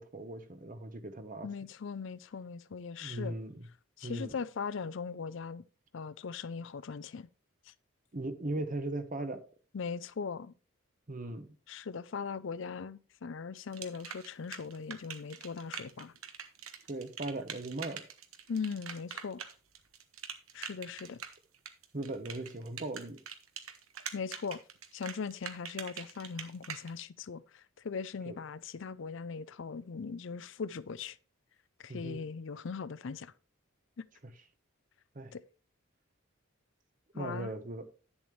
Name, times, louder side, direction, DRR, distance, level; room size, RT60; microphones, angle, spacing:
voice 1, 0.0-1.5 3.0-3.7 4.0-4.3 8.1-9.4 11.1-11.5 16.9-18.0 21.9-23.2 28.3-28.4 31.9-32.2 35.1-35.3 37.1-37.9, right 2 dB, 40° right, 0.9 m, -38 dB
voice 2, 1.4-3.4 4.0-5.6 5.9-7.3 7.7-7.8 9.7-10.5 11.7-16.1 18.5-19.4 20.5-21.2 24.1-24.6 24.9-31.2 31.8-33.3 34.0-34.1 35.3-35.4 37.1-37.5, left 5 dB, 60° left, 0.5 m, -39 dB
sound 1, 13.7-26.9, right 8 dB, 80° right, 1.1 m, -44 dB
10.5 x 7.1 x 3.2 m
head